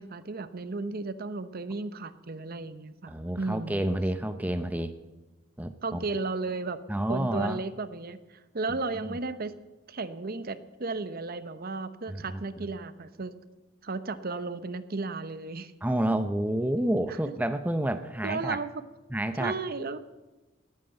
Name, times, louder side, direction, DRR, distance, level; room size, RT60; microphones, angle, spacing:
voice 1, 0.0-3.8 5.8-6.8 7.1-9.5 9.9-13.3 13.8-15.7 18.2-18.7 19.4-20.0, right 3 dB, 45° right, 13 dB, 0.8 m, -34 dB
voice 2, 3.1-4.9 5.6-6.0 6.9-7.6 9.0-9.1 12.1-12.7 15.8-18.6 19.1-19.5, right 1 dB, 10° right, 9 dB, 0.6 m, -29 dB
19.0 x 9.2 x 7.9 m, 1.1 s
head